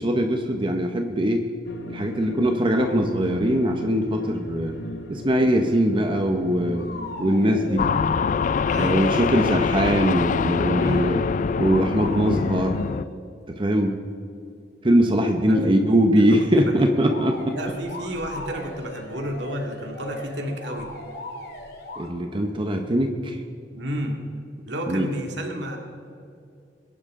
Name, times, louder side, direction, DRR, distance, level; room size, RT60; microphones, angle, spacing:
voice 1, 0.0-1.5 1.9-4.8 5.1-6.9 7.2-7.9 8.7-11.2 11.6-12.9 13.5-14.0 14.8-17.6 22.0-23.4 24.9-25.1, equal, 30° right, 4 dB, 0.8 m, -21 dB
sound 1, 1.7-7.8, left 1 dB, 80° left, 0.9 m, -38 dB
sound 2, 6.2-6.3 6.7-8.0 8.6-9.6 10.9-13.1 17.0-22.1, left 2 dB, 65° left, 2.1 m, -39 dB
sound 3, 7.8-13.0, left 5 dB, 45° left, 0.3 m, -24 dB
voice 2, 8.7-9.3 10.7-11.2 15.5-16.6 17.5-20.9 23.7-24.2 24.7-25.8, equal, 70° right, 1 dB, 2.1 m, -31 dB
22.0 x 11.0 x 3.7 m, 2.5 s
head